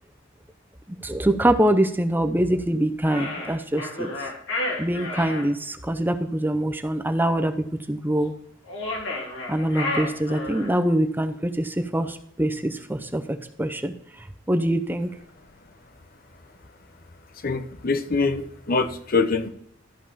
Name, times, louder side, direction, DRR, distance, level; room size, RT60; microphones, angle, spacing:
voice 1, 1.0-4.1 4.8-8.3 9.5-13.9 14.5-15.1, right 1 dB, 10° right, 7 dB, 0.7 m, -24 dB
sound 1, 3.0-5.5 8.6-10.8, left 2 dB, 75° left, 3.3 m, -31 dB
voice 2, 17.4-19.5, left 4 dB, 50° left, 9 dB, 1.0 m, -24 dB
13.5 x 5.4 x 5.6 m, 0.67 s
head